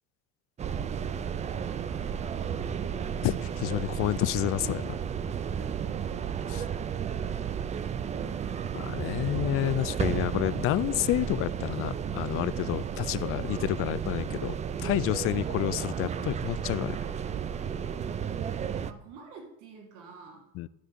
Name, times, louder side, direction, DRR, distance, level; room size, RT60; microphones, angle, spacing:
sound 1, 0.6-18.9, right 8 dB, 20° right, 0.4 m, -33 dB
voice 1, 3.2-5.0 6.5-6.6 8.7-14.5 14.8-17.0 20.6-20.7, left 15 dB, 45° left, 17 dB, 0.4 m, -29 dB
voice 2, 5.6-6.3 18.7-20.5, right 6 dB, 70° right, 2 dB, 2.0 m, -50 dB
12.0 x 5.0 x 3.7 m, 0.84 s
supercardioid pair, 105°, 32 cm